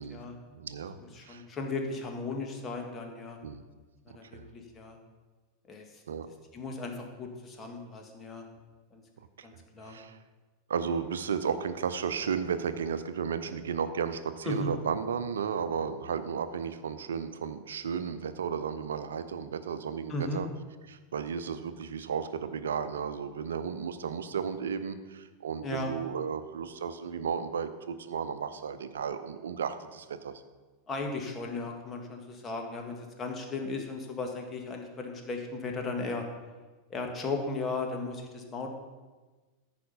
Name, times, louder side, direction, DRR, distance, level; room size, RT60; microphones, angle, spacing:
voice 1, 0.0-0.4 1.1-3.4 4.0-5.0 5.7-6.0 6.5-8.4 8.9-9.0 9.4-10.0 14.4-14.7 20.1-20.4 25.6-25.9 30.9-36.2 36.9-38.8, left 3 dB, 25° left, 2 dB, 1.8 m, -36 dB
voice 2, 0.5-1.0 1.2-1.4 3.4-3.6 4.1-4.5 6.1-6.3 9.4-9.5 9.8-10.2 10.7-20.5 20.9-30.4, right 7 dB, 75° right, 12 dB, 0.6 m, -34 dB
13.5 x 5.1 x 5.4 m, 1.3 s
figure-of-eight pair, 90°, 0 cm